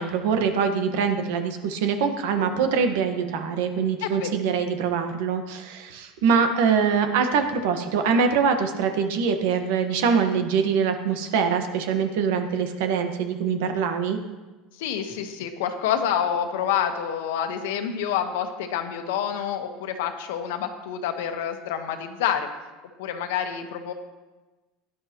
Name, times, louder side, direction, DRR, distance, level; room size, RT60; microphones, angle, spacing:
voice 1, 0.0-14.2, right 6 dB, 75° right, 6 dB, 1.4 m, -24 dB
voice 2, 14.8-22.5 23.0-23.9, left 9 dB, 85° left, 6 dB, 1.3 m, -28 dB
17.0 x 11.0 x 3.1 m, 1.2 s
supercardioid pair, 135°, 0 cm